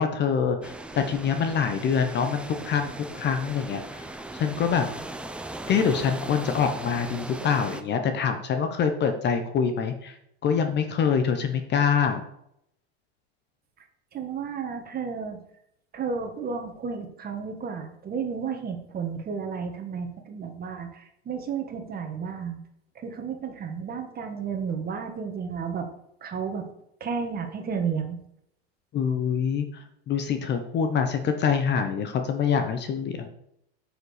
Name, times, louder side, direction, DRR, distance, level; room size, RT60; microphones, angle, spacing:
voice 1, 0.0-4.0 4.3-4.9 5.7-10.1 10.4-12.2 28.9-29.7 30.1-33.3, left 6 dB, 30° left, 7 dB, 0.9 m, -25 dB
sound 1, 0.6-7.8, right 1 dB, 5° right, 0.5 m, -38 dB
voice 2, 14.1-15.4 15.9-22.6 22.9-25.9 26.2-26.7 27.0-28.2, right 6 dB, 30° right, 5 dB, 1.6 m, -32 dB
8.8 x 5.1 x 5.0 m, 0.77 s
supercardioid pair, 115°, 33 cm